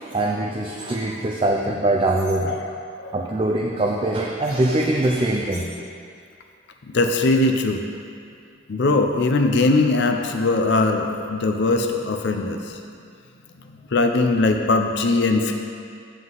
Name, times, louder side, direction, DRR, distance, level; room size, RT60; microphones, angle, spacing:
voice 1, 0.0-2.5 3.1-5.7, right 1 dB, 25° right, -1 dB, 0.4 m, -22 dB
voice 2, 2.4-3.1 6.9-7.8 8.7-12.8 13.9-15.5, left 2 dB, 60° left, 4 dB, 0.5 m, -20 dB
7.8 x 7.5 x 3.9 m, 2.3 s
head